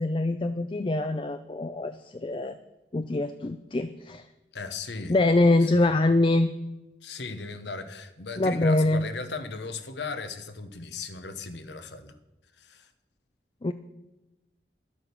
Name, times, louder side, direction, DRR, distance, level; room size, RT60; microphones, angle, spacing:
voice 1, 0.0-2.6 2.9-4.3 5.1-6.5 8.4-9.0 13.6-13.7, left 2 dB, 30° left, 0.4 m, -24 dB
voice 2, 4.5-5.2 5.6-5.9 7.0-12.2 12.6-12.9, left 4 dB, 80° left, 1.1 m, -37 dB
11.5 x 8.6 x 7.0 m
head